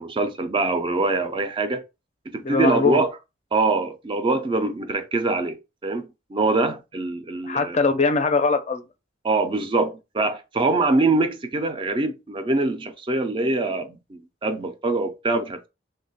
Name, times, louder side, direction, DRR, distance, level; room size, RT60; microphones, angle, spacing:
voice 1, 0.0-1.8 2.3-3.1 3.5-5.6 5.8-7.8 9.2-15.7, right 3 dB, 25° right, 0.4 m, -24 dB
voice 2, 2.4-3.1 7.4-8.9, left 4 dB, 40° left, 0.5 m, -21 dB
3.0 x 2.1 x 4.0 m
head